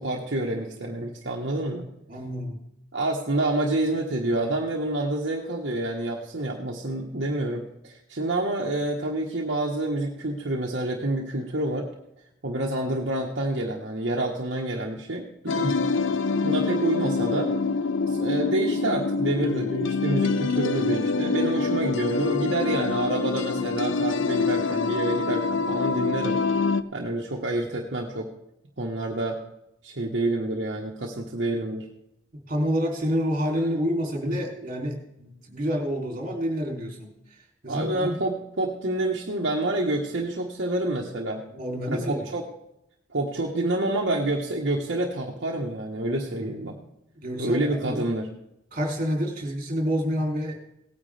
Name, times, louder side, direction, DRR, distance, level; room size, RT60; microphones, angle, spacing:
voice 1, 0.0-1.9 2.9-11.9 12.4-15.8 16.4-17.5 18.1-26.4 26.9-28.3 28.8-29.4 29.8-31.9 34.3-34.4 37.7-41.4 41.9-42.4 43.1-46.7 47.4-48.3, right 2 dB, 65° right, -2 dB, 1.3 m, -28 dB
voice 2, 2.1-2.6 32.5-37.4 37.6-38.1 41.5-42.3 46.4-46.5 47.1-48.1 48.7-50.6, equal, 40° right, 1 dB, 3.1 m, -28 dB
sound 1, 15.5-26.8, left 4 dB, 80° left, 0.5 m, -25 dB
17.5 x 9.7 x 3.4 m, 0.81 s
head